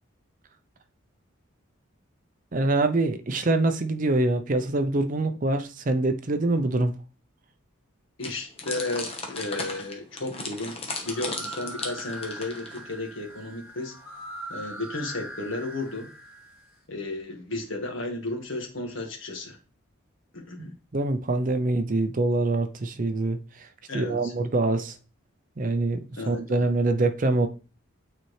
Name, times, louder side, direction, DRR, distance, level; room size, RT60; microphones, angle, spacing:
voice 1, 2.5-6.9 20.6-23.7 23.9-25.0 25.6-27.5, right 2 dB, 40° right, 0.5 m, -25 dB
voice 2, 8.2-10.8 11.0-13.9 14.5-16.1 16.9-19.6 20.3-20.7 23.9-24.3 26.2-26.6, left 2 dB, 65° left, 1.6 m, -33 dB
sound 1, 8.2-12.9, left 3 dB, 30° left, 1.1 m, -36 dB
sound 2, 10.9-16.7, right 1 dB, 5° right, 2.4 m, -41 dB
9.0 x 4.2 x 3.2 m
head